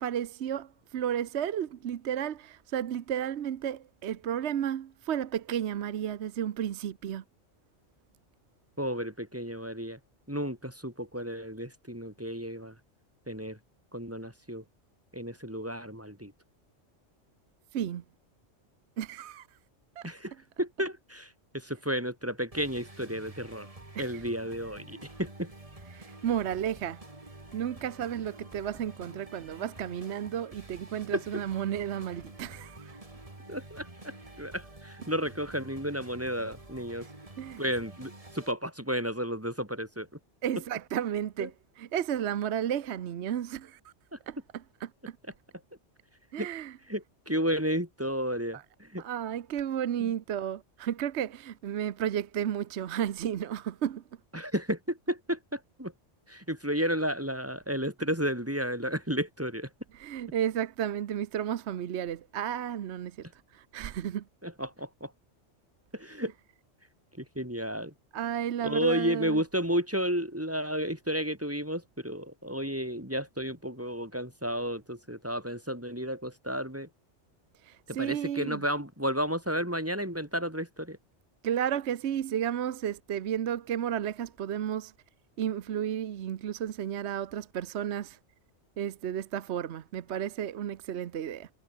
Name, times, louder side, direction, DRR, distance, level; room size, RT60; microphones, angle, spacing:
voice 1, 0.0-7.2 17.7-18.0 19.0-19.5 20.0-20.1 23.9-24.2 25.9-27.0 27.5-33.0 37.4-37.6 40.4-43.9 44.3-44.4 44.8-45.2 46.3-46.8 48.5-48.6 49.0-54.0 59.9-63.3 63.5-64.2 68.1-69.4 77.6-78.6 81.4-84.9 85.4-88.2 88.8-91.5, right 9 dB, 70° right, 1.1 m, -33 dB
voice 2, 8.8-10.0 10.3-12.7 13.3-13.6 13.9-14.6 15.1-16.3 20.0-20.3 20.6-23.7 24.0-25.5 31.1-31.2 33.5-37.1 37.6-40.1 41.4-41.5 44.1-44.2 46.4-46.5 46.9-49.0 50.0-50.1 54.3-55.9 56.3-59.7 64.4-65.1 65.9-66.3 67.2-67.9 68.6-76.9 77.9-81.0, equal, 10° right, 3.3 m, -32 dB
sound 1, 22.5-38.5, right 2 dB, 30° right, 2.9 m, -49 dB
omnidirectional pair, 1.2 m